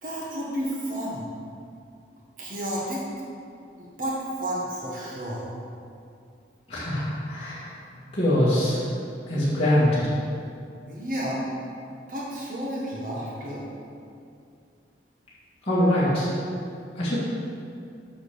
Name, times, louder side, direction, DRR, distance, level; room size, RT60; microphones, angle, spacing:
voice 1, 0.0-1.3 2.4-3.0 3.8-5.5 10.9-11.5 11.9-13.7, equal, 45° right, -5 dB, 1.5 m, -31 dB
voice 2, 6.7-7.7 8.0-8.9 9.3-10.1 15.6-16.3 16.9-17.2, left 1 dB, 30° left, -10 dB, 2.0 m, -23 dB
7.0 x 5.8 x 6.8 m, 2.5 s
head